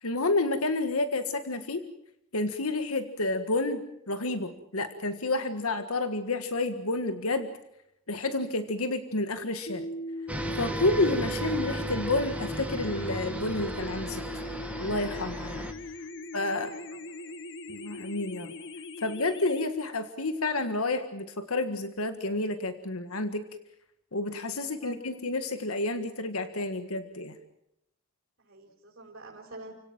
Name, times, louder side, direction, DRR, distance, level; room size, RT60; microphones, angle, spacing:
voice 1, 0.0-1.8 2.3-7.5 8.1-9.9 10.5-14.4 14.8-15.7 16.3-16.7 17.7-18.5 19.0-23.4 24.1-27.3, left 2 dB, 90° left, 9 dB, 1.7 m, -30 dB
sound 1, 9.7-19.7, left 1 dB, 60° left, 1.7 m, -40 dB
sound 2, 10.3-15.7, right 1 dB, 5° right, 2.3 m, -35 dB
voice 2, 15.9-17.4 24.5-25.0 28.4-29.7, right 2 dB, 60° right, -4 dB, 5.5 m, -49 dB
30.0 x 17.5 x 7.4 m, 0.81 s
head